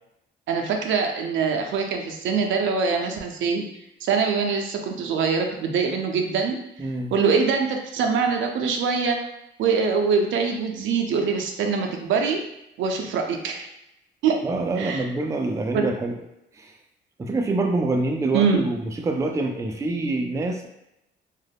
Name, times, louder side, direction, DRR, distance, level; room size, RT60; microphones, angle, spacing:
voice 1, 0.5-3.6 4.0-6.6 7.1-9.2 9.6-12.4 12.8-13.7 14.2-14.4 14.8-15.0 15.7-15.9 18.3-18.6, right 5 dB, 75° right, 3 dB, 0.5 m, -23 dB
voice 2, 6.8-7.1 14.4-16.2 16.6-16.7 17.2-20.7, right 2 dB, 15° right, 2 dB, 0.3 m, -26 dB
2.3 x 2.0 x 3.3 m, 0.85 s
cardioid pair, 90°, 20 cm